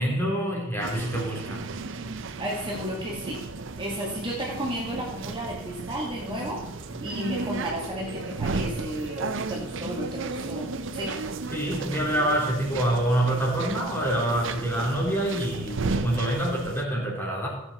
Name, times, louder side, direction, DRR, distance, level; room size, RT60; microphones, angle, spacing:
voice 1, 0.0-1.6 11.5-17.5, right 1 dB, 10° left, -3 dB, 3.4 m, -26 dB
sound 1, 0.8-16.8, right 3 dB, 65° right, 0.7 m, -34 dB
voice 2, 2.4-3.4 3.8-6.6 7.0-11.2, equal, 25° right, -3 dB, 1.9 m, -33 dB
15.5 x 7.9 x 4.2 m, 0.92 s
head